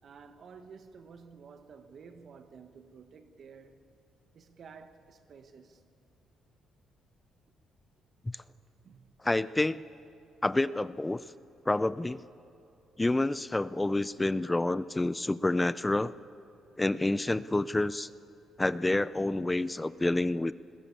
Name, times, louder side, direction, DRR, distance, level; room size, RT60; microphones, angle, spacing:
voice 1, 0.0-3.8 4.3-5.8 8.8-9.2, right 5 dB, 55° right, 1.3 m, -52 dB
voice 2, 9.2-9.8 10.4-11.2 11.7-12.2 13.0-16.1 16.8-18.1 18.6-20.5, left 2 dB, 15° left, 0.5 m, -28 dB
20.5 x 20.0 x 8.6 m
cardioid pair, 90°, 0 cm